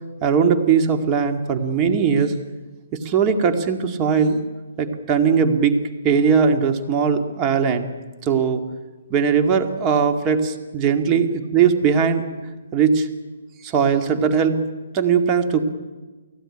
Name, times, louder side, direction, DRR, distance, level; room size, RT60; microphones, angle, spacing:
voice 1, 0.2-2.3 2.9-4.4 4.8-5.8 6.0-7.9 8.2-8.6 9.1-12.2 12.7-13.1 13.6-14.6 14.9-15.6, right 6 dB, 20° right, 5 dB, 2.1 m, -19 dB
29.0 x 18.0 x 9.9 m, 1.3 s
hypercardioid pair, 155°, 0 cm